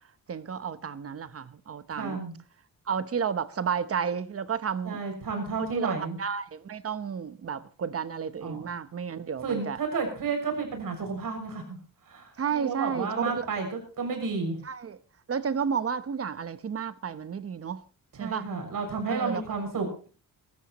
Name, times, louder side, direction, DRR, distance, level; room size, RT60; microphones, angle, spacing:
voice 1, 0.3-2.2 2.9-5.0 5.7-5.9 6.2-9.8 12.4-13.5 14.6-15.0 15.3-17.8 18.2-18.5 19.1-19.4, right 7 dB, 40° right, 0.9 m, -32 dB
voice 2, 2.0-2.3 4.8-6.2 8.4-8.7 9.4-11.8 12.1-14.6 18.2-19.9, right 4 dB, 65° right, 6.6 m, -31 dB
23.5 x 13.0 x 3.1 m
wide cardioid pair, 145°, 35 cm